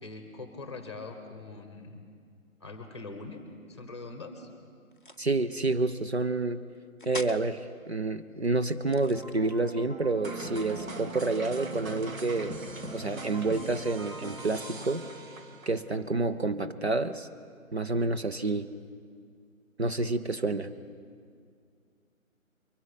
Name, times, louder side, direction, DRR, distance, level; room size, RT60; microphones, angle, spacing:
voice 1, 0.0-2.1 2.6-3.4 3.7-4.5, left 3 dB, 20° left, 6 dB, 1.1 m, -42 dB
sound 1, 4.9-5.4 7.0-7.5 8.8-9.7, left 2 dB, 40° left, 0.5 m, -42 dB
voice 2, 5.2-6.6 7.1-12.6 12.9-15.1 15.7-17.3 17.7-18.7 19.8-20.7, right 3 dB, 50° right, 9 dB, 0.6 m, -29 dB
sound 2, 9.1-15.1, right 1 dB, 35° right, 1.8 m, -46 dB
sound 3, 10.2-15.9, right 2 dB, 70° right, 1.6 m, -41 dB
23.5 x 7.9 x 5.8 m, 2.2 s
figure-of-eight pair, 155°, 42 cm